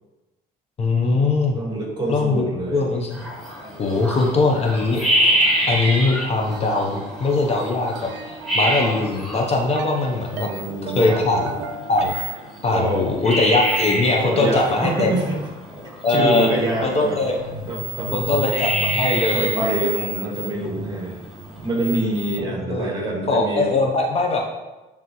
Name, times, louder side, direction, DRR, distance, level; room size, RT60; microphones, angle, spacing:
voice 1, 0.8-1.6 2.1-2.5 2.7-3.2 3.8-5.0 5.7-10.5 10.9-11.4 11.9-12.1 12.6-15.1 16.0-16.5 16.8-17.4 18.1-19.5 22.4-22.9 23.3-24.6, left 3 dB, 40° left, 1 dB, 0.9 m, -21 dB
voice 2, 1.5-2.8 10.3-11.4 12.7-13.1 14.1-15.4 16.1-17.2 17.7-18.2 19.3-21.2 21.6-23.7, right 2 dB, 25° right, -1 dB, 1.9 m, -25 dB
sound 1, 3.1-22.4, right 1 dB, ahead, 2.2 m, -27 dB
sound 2, 6.5-12.0, right 4 dB, 85° right, 0.5 m, -38 dB
9.3 x 3.5 x 3.1 m, 1.1 s
cardioid pair, 110°, 17 cm